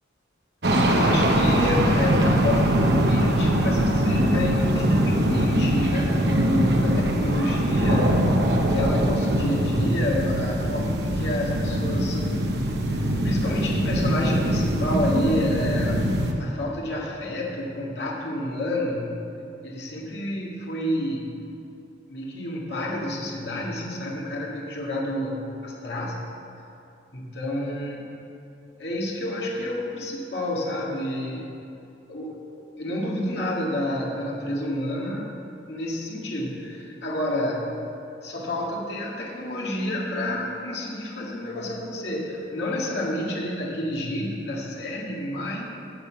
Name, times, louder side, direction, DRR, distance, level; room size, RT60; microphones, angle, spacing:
sound 1, 0.6-16.3, right 1 dB, 60° right, 1.0 m, -22 dB
voice 1, 0.9-8.1 8.7-12.2 13.2-16.1 16.4-19.1 19.6-21.4 22.1-26.2 27.1-28.2 28.8-31.5 32.1-35.4 35.7-37.8 38.2-45.7, left 1 dB, 65° left, -3 dB, 1.8 m, -29 dB
11.0 x 6.9 x 7.0 m, 2.7 s
head